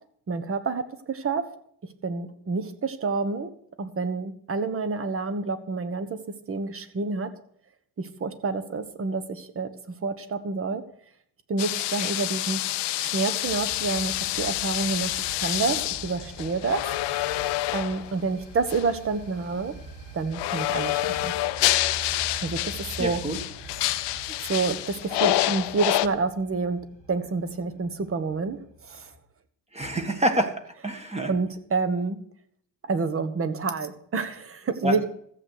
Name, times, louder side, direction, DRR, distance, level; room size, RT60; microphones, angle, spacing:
voice 1, 0.3-1.4 2.0-3.5 3.8-6.2 6.5-7.3 8.0-10.8 11.5-12.6 13.0-16.8 17.7-19.7 20.1-21.3 22.4-23.2 24.4-26.8 27.1-29.1 31.3-32.2 32.8-35.1, right 4 dB, 35° right, 11 dB, 1.3 m, -28 dB
sound 1, 11.6-18.1 18.7-18.9 20.3-26.1, left 16 dB, 85° left, 0.8 m, -28 dB
sound 2, 13.4-29.2, right 3 dB, 50° right, 4.9 m, -45 dB
voice 2, 23.0-23.4 29.7-31.3 34.8-35.0, right 1 dB, 15° right, 5 dB, 1.7 m, -27 dB
14.0 x 7.9 x 6.5 m, 0.65 s
cardioid pair, 115°, 41 cm